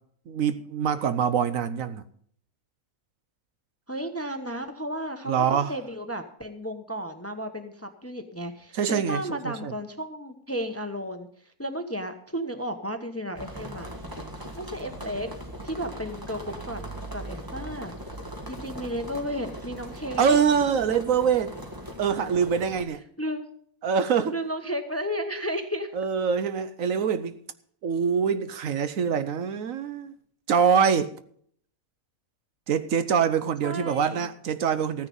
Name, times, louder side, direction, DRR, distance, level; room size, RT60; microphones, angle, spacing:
voice 1, 0.3-2.0 5.3-5.7 8.7-9.7 20.2-21.5 22.0-23.0 23.8-24.4 25.9-27.4 27.8-30.1 30.5-31.2 32.7-35.1, right 7 dB, 65° right, 1.1 m, -24 dB
voice 2, 3.9-13.9 14.5-15.3 15.6-17.9 18.5-20.4 23.2-23.5 24.3-25.9 33.6-34.3, equal, 10° left, 0.8 m, -33 dB
sound 1, 13.4-22.8, right 1 dB, 15° right, 1.5 m, -39 dB
14.5 x 9.8 x 5.4 m
omnidirectional pair, 1.5 m